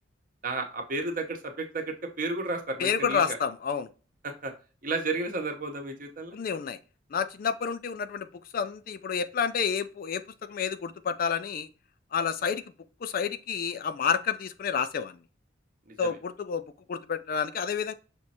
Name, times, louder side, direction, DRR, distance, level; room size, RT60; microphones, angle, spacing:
voice 1, 0.4-3.4 4.2-4.5 4.8-6.4 16.0-16.1, right 3 dB, 45° right, 0.8 m, -32 dB
voice 2, 2.8-3.9 6.3-6.8 7.1-8.3 8.5-11.7 12.1-12.6 13.0-15.2 16.0-17.9, left 6 dB, 45° left, 0.3 m, -29 dB
5.8 x 3.1 x 2.8 m
head